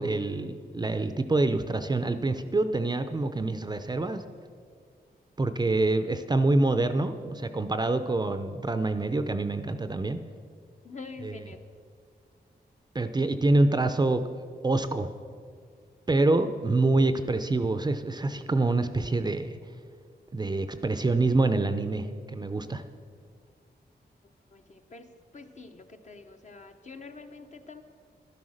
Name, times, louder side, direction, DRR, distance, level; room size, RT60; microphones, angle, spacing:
voice 1, 0.0-4.2 5.4-10.2 11.2-11.3 12.9-14.2 14.6-15.1 16.1-19.6 20.3-22.8, right 2 dB, 25° right, 9 dB, 0.5 m, -26 dB
voice 2, 10.8-11.6 24.5-27.8, left 4 dB, 45° left, 6 dB, 1.0 m, -46 dB
11.5 x 11.0 x 6.4 m, 2.1 s
wide cardioid pair, 125°, 17 cm